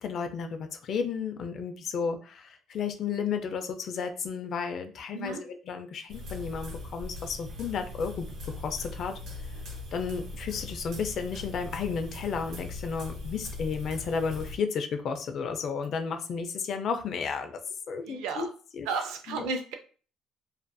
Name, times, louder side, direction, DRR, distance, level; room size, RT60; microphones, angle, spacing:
voice 1, 0.0-8.3 8.6-9.2 9.9-17.6 17.9-18.5 18.7-18.9 19.3-19.5, left 6 dB, 50° left, 7 dB, 0.4 m, -33 dB
sound 1, 6.1-14.5, left 2 dB, 55° right, 0.8 m, -40 dB
voice 2, 18.1-18.5 18.9-19.7, right 4 dB, 90° right, 6 dB, 0.4 m, -33 dB
2.5 x 2.4 x 2.3 m, 0.39 s
cardioid pair, 125°, 0 cm